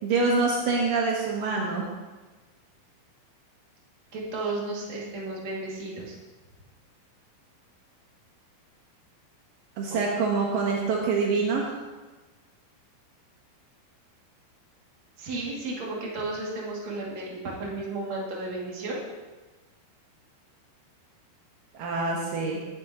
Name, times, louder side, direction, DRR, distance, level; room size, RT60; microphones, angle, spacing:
voice 1, 0.0-1.9 9.8-11.8 21.7-22.6, right 4 dB, 75° right, -2 dB, 2.0 m, -25 dB
voice 2, 4.1-6.2 9.9-10.0 15.2-19.1, right 2 dB, 40° right, -4 dB, 2.8 m, -33 dB
18.0 x 11.5 x 3.0 m, 1.2 s
omnidirectional pair, 5.9 m